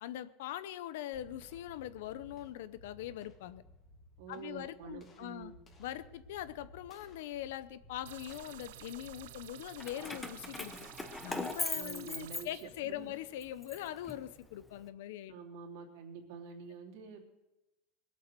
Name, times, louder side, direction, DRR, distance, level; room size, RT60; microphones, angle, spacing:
voice 1, 0.0-3.6 4.3-5.5 5.8-10.9 11.2-15.4, left 13 dB, 80° left, 15 dB, 0.8 m, -42 dB
sound 1, 1.1-10.3, equal, 30° left, 2.9 m, -58 dB
voice 2, 4.2-5.5 11.7-13.1 15.3-17.2, right 6 dB, 70° right, 2 dB, 3.1 m, -47 dB
sound 2, 8.1-12.4, right 13 dB, 90° right, 0.7 m, -51 dB
Keys jangling, 9.8-13.0 13.4-14.7, left 2 dB, 10° left, 1.1 m, -40 dB
21.0 x 8.6 x 6.9 m, 1.0 s
supercardioid pair, 155°, 0 cm